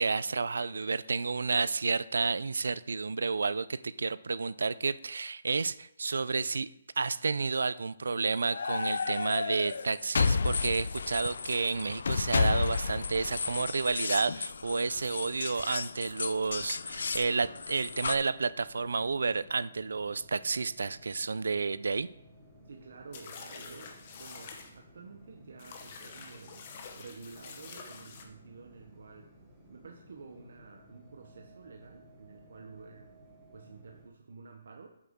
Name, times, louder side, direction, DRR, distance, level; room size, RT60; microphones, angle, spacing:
voice 1, 0.0-6.7 7.0-22.1, right 4 dB, 85° right, 17 dB, 0.4 m, -31 dB
sound 1, 8.5-18.2, left 5 dB, 60° left, 0.4 m, -32 dB
sound 2, 15.1-34.1, equal, ahead, 1.1 m, -57 dB
voice 2, 22.6-26.6 26.9-29.3 29.7-33.1 33.5-34.9, right 4 dB, 60° right, 3 dB, 0.8 m, -50 dB
sound 3, 23.1-24.7 25.6-28.2, left 5 dB, 30° left, 0.9 m, -47 dB
8.5 x 7.4 x 3.6 m, 0.78 s
hypercardioid pair, 175°, 0 cm